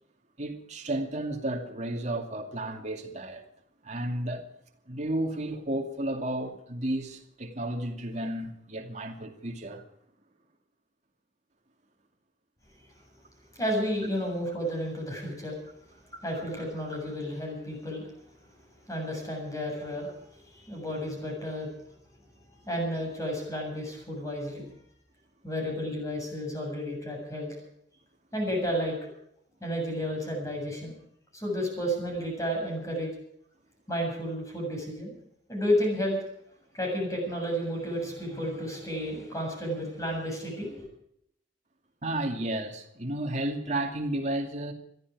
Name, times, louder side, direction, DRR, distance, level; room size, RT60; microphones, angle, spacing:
voice 1, 0.4-3.5 3.8-4.4 4.9-9.8 42.0-44.7, right 1 dB, 40° right, 2.5 m, -32 dB
voice 2, 13.5-15.6 16.2-18.1 18.9-21.7 22.6-24.7 25.4-27.5 28.3-29.0 29.6-31.0 31.3-33.1 33.9-35.2 35.5-36.2 36.7-40.9, equal, 20° left, 7.5 m, -32 dB
21.5 x 13.5 x 4.9 m
head